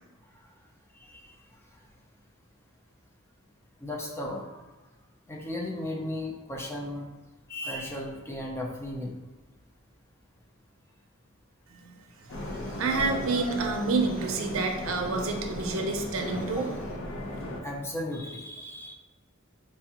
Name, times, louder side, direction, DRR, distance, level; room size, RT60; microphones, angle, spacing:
voice 1, 3.8-4.5 5.3-7.1 7.5-9.2 16.5-16.6 17.6-18.9, left 1 dB, 10° left, -1 dB, 0.4 m, -35 dB
voice 2, 12.2-16.7, right 4 dB, 75° right, 3 dB, 0.5 m, -29 dB
sound 1, 12.3-17.6, left 1 dB, 65° left, 0.5 m, -36 dB
4.4 x 2.3 x 2.8 m, 1.1 s
head